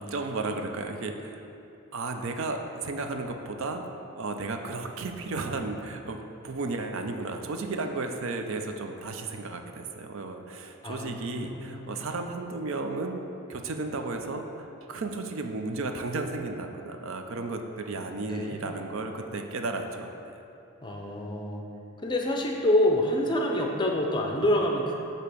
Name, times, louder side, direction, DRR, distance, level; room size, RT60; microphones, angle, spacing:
voice 1, 0.0-1.4 1.9-3.9 4.1-13.2 13.5-20.4, right 3 dB, 70° right, 5 dB, 0.5 m, -34 dB
voice 2, 10.8-12.0 18.3-18.6 20.8-21.7 22.0-25.0, left 1 dB, 20° left, 1 dB, 0.5 m, -27 dB
8.2 x 2.9 x 6.1 m, 2.7 s
head